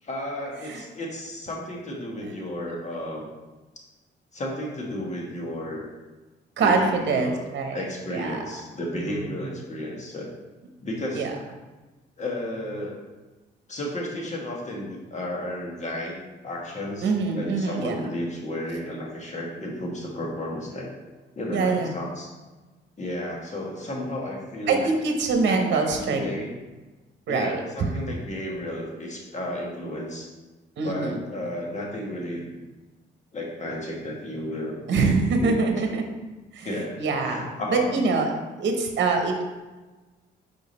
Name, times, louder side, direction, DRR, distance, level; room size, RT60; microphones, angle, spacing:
voice 1, 0.0-3.3 4.3-5.9 6.6-7.4 7.7-10.3 10.8-11.2 12.2-13.0 13.7-20.9 21.4-22.3 23.0-25.0 25.4-26.5 27.3-30.3 30.8-32.6 33.3-34.8 35.4-36.0 36.6-38.1, left 1 dB, 35° left, -1 dB, 1.6 m, -33 dB
voice 2, 6.6-7.8 8.1-8.4 9.0-9.5 11.1-11.3 17.0-18.0 21.5-21.9 24.7-26.2 27.3-27.6 30.8-31.2 34.9-36.0 36.5-36.7 37.0-38.3 38.6-39.4, right 4 dB, 65° right, 4 dB, 1.0 m, -24 dB
5.0 x 4.8 x 4.1 m, 1.2 s
cardioid pair, 90°, 20 cm